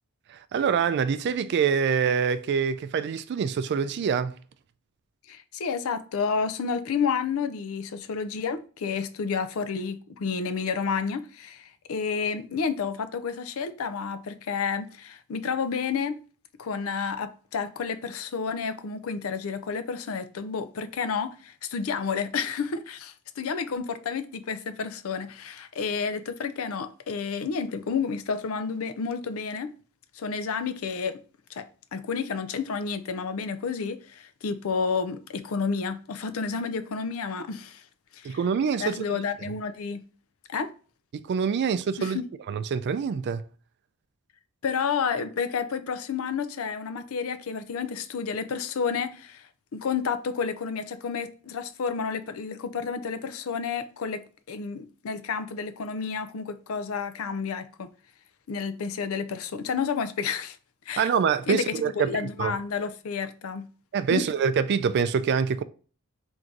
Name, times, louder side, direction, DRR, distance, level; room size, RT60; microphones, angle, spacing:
voice 1, 0.3-4.3 38.2-39.5 41.1-42.2 42.5-43.4 61.0-62.6 63.9-65.6, right 6 dB, 50° right, 0.3 m, -25 dB
voice 2, 5.3-16.2 16.6-29.7 30.1-31.2 31.5-37.8 38.1-38.4 38.8-40.0 40.5-40.7 42.0-42.3 44.6-57.9 58.5-60.6 60.9-61.1 61.5-63.7 64.1-64.2, left 5 dB, 70° left, 0.4 m, -30 dB
3.7 x 2.6 x 4.5 m
head